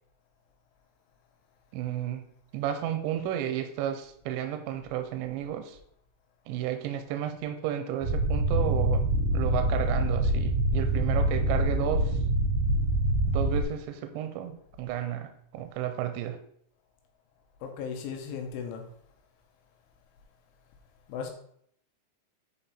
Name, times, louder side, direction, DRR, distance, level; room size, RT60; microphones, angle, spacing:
voice 1, 1.7-2.3 2.5-5.8 6.5-9.1 9.3-12.2 13.3-16.4, right 10 dB, 85° right, 7 dB, 3.0 m, -32 dB
sound 1, 8.0-13.6, right 1 dB, 10° right, 1.5 m, -25 dB
voice 2, 17.6-18.8 21.1-21.3, left 6 dB, 85° left, 3 dB, 3.7 m, -36 dB
10.0 x 4.9 x 4.3 m, 0.66 s
omnidirectional pair, 5.3 m